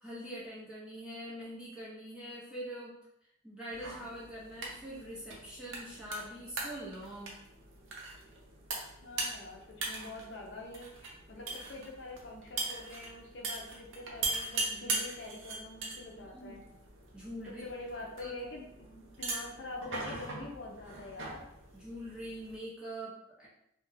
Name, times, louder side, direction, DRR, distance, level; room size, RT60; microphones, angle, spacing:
voice 1, 0.0-2.9 3.4-7.3 16.2-16.6 17.1-17.6 18.2-18.3 21.8-23.5, equal, 5° right, -8 dB, 0.7 m, -43 dB
sound 1, 3.7-22.6, right 3 dB, 80° right, 0.6 m, -41 dB
voice 2, 9.0-16.6 17.5-21.5, left 2 dB, 60° left, -1 dB, 0.5 m, -45 dB
2.3 x 2.2 x 3.2 m, 0.78 s
head